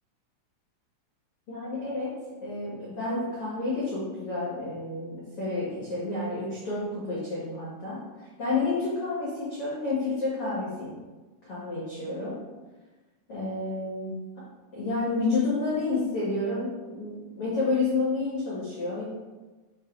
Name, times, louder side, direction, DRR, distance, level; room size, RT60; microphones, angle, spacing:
voice 1, 1.5-8.0 8.4-10.9 11.4-12.3 13.3-14.1 14.7-19.0, left 3 dB, 85° left, -8 dB, 1.2 m, -30 dB
7.9 x 3.0 x 5.2 m, 1.2 s
omnidirectional pair, 5.5 m